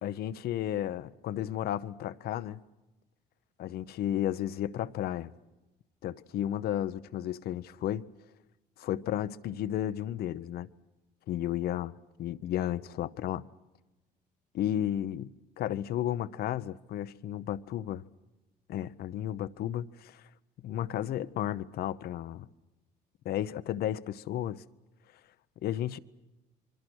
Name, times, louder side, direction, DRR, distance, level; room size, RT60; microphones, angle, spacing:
voice 1, 0.0-2.6 3.6-5.3 6.0-8.1 8.8-10.7 11.3-11.9 12.2-13.5 14.5-15.3 15.6-18.0 18.7-20.2 20.6-22.5 23.2-24.6 25.6-26.0, left 11 dB, 70° left, 0.8 m, -33 dB
27.0 x 23.5 x 6.3 m
cardioid pair, 110°, 17 cm